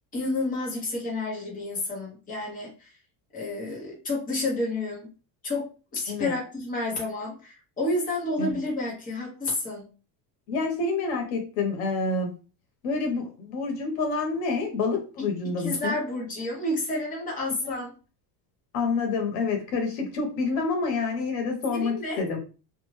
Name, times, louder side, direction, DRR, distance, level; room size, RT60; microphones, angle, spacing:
voice 1, 0.1-2.9 3.3-5.1 5.4-9.9 15.6-17.9 21.7-22.2, left 2 dB, 20° left, -4 dB, 0.9 m, -30 dB
voice 2, 10.5-12.3 12.8-15.9 17.6-17.7 18.7-22.4, left 4 dB, 85° left, 3 dB, 1.1 m, -28 dB
2.5 x 2.2 x 3.1 m, 0.35 s
cardioid pair, 165°, 45 cm